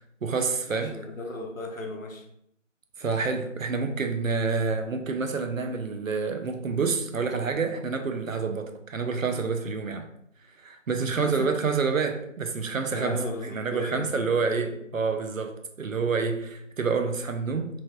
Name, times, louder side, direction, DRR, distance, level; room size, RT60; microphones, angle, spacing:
voice 1, 0.0-0.9 3.0-10.1 10.6-13.2 13.5-17.8, right 4 dB, 85° right, 0.6 m, -28 dB
voice 2, 0.7-2.3 11.1-11.5 12.9-14.8, left 2 dB, 90° left, 0.8 m, -36 dB
3.1 x 2.2 x 3.0 m
figure-of-eight pair, 175°, 39 cm